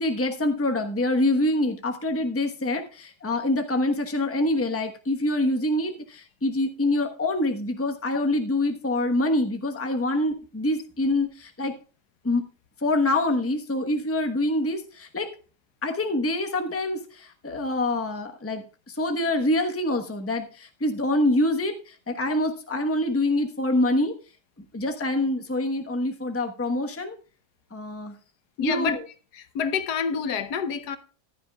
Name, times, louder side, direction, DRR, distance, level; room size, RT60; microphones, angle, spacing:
voice 1, 0.0-11.7 12.2-12.5 12.8-15.3 15.8-24.1 24.7-27.2 27.7-28.2 28.6-29.0, left 1 dB, 10° left, 0.9 m, -25 dB
voice 2, 28.6-29.0 29.3-31.0, left 6 dB, 75° left, 1.4 m, -27 dB
14.5 x 11.0 x 2.3 m
omnidirectional pair, 1.8 m